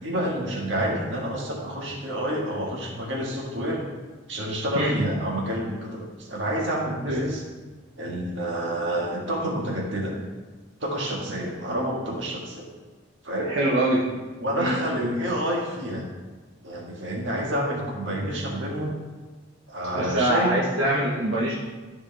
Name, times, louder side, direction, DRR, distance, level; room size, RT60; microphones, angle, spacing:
voice 1, 0.0-3.8 4.3-7.4 8.0-10.2 10.8-12.6 13.2-13.5 14.4-16.1 16.6-19.0 19.7-20.5, right 1 dB, 65° right, -2 dB, 1.9 m, -28 dB
voice 2, 4.7-5.1 7.1-7.3 13.5-14.0 14.6-14.7 19.9-21.5, right 1 dB, 85° right, -6 dB, 1.3 m, -24 dB
13.0 x 4.8 x 3.5 m, 1.3 s
head